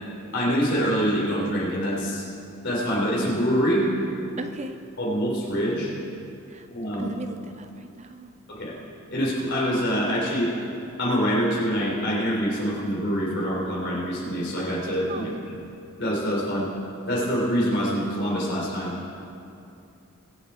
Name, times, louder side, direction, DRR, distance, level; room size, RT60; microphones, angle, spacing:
voice 1, 0.3-2.3 2.6-3.9 5.0-5.9 6.7-7.1 8.5-8.7 9.1-10.5 11.0-15.5 16.0-16.7 17.1-18.9, equal, 50° left, -5 dB, 3.9 m, -25 dB
voice 2, 4.4-4.8 6.5-6.7 6.9-8.3 15.1-15.4, right 2 dB, 30° right, 8 dB, 0.5 m, -37 dB
23.0 x 8.3 x 4.4 m, 2.7 s
head